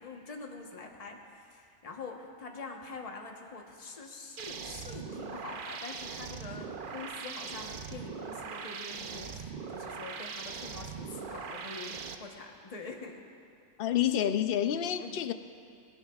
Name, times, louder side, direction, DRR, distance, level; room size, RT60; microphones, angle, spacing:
voice 1, 0.0-13.2 15.0-15.2, left 3 dB, 30° left, 1 dB, 1.1 m, -45 dB
sound 1, 4.4-12.2, right 5 dB, 50° right, 0.7 m, -41 dB
voice 2, 13.8-15.3, left 10 dB, 60° left, 10 dB, 0.6 m, -28 dB
19.0 x 16.5 x 2.4 m, 2.4 s
omnidirectional pair, 1.4 m